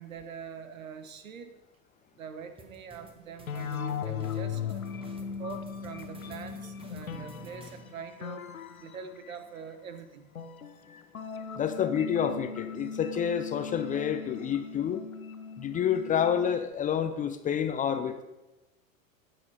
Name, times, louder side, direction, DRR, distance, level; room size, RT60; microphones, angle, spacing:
voice 1, 0.0-1.5 2.2-4.8 5.4-8.4 8.8-10.3, right 6 dB, 70° right, 10 dB, 1.3 m, -43 dB
sound 1, 2.6-7.8, right 1 dB, 15° right, 1.6 m, -51 dB
sound 2, 3.5-9.6 10.4-16.6, left 7 dB, 80° left, 1.0 m, -38 dB
voice 2, 11.6-15.0 15.6-18.2, left 8 dB, 20° left, 8 dB, 0.6 m, -29 dB
18.0 x 6.0 x 4.8 m, 1.0 s
figure-of-eight pair, 90°, 41 cm